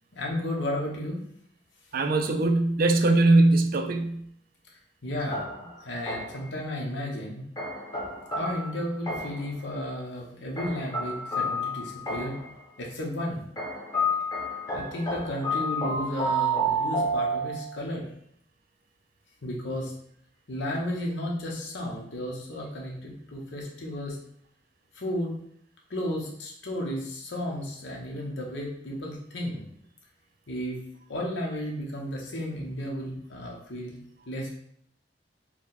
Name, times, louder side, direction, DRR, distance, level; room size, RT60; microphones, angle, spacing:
voice 1, 0.1-1.2 5.0-7.4 8.4-12.3 12.8-13.4 14.7-18.1 19.4-19.9 20.5-24.2 24.9-25.4 25.9-29.6 30.5-30.8 31.1-34.0 34.3-34.5, left 1 dB, 80° left, -1 dB, 1.0 m, -33 dB
voice 2, 1.9-4.2, right 2 dB, 50° right, 6 dB, 0.4 m, -21 dB
sound 1, 5.3-6.5 7.6-9.5 10.6-12.5 13.6-17.8, right 1 dB, 20° left, 1.0 m, -30 dB
4.6 x 2.2 x 4.0 m, 0.68 s
head